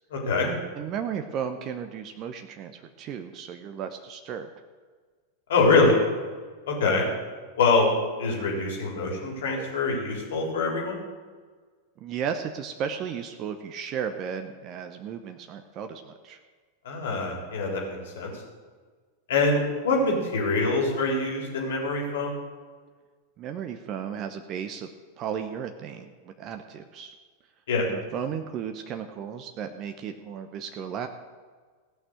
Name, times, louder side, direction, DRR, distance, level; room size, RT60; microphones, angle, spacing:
voice 1, 0.1-0.6 5.5-6.0 6.7-7.1 7.6-11.0 16.8-18.3 19.3-22.4 27.7-27.9, left 3 dB, 60° left, -1 dB, 3.7 m, -24 dB
voice 2, 0.7-4.5 12.0-16.4 23.4-24.9 25.2-27.1 27.9-31.1, right 7 dB, 35° right, 7 dB, 0.9 m, -34 dB
17.0 x 6.2 x 8.0 m, 1.5 s
figure-of-eight pair, 90°, 0 cm